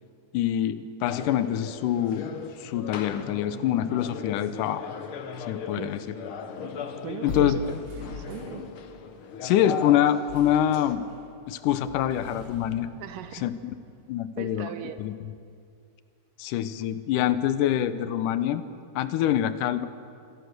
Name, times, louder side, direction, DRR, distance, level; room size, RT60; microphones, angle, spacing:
voice 1, 0.3-2.2 2.6-4.9 5.5-6.0 7.2-7.8 9.4-11.0 11.5-12.9 13.4-13.6 14.1-14.7 15.0-15.1 16.4-18.6 19.0-19.9, left 11 dB, 80° left, 13 dB, 2.3 m, -25 dB
sound 1, 1.1-11.0, left 6 dB, 60° left, 1.4 m, -38 dB
voice 2, 5.6-6.0 7.0-7.6 8.0-8.6 13.0-13.5 14.4-15.0, right 10 dB, 85° right, 10 dB, 2.6 m, -39 dB
sound 2, 7.3-8.5 10.3-11.2 11.7-12.3, left 2 dB, 40° left, 2.0 m, -37 dB
sound 3, 7.6-8.7 10.3-10.7 11.0-11.3 12.1-14.4, equal, 60° right, 5.6 m, -50 dB
26.0 x 16.0 x 6.6 m, 2.4 s
omnidirectional pair, 3.8 m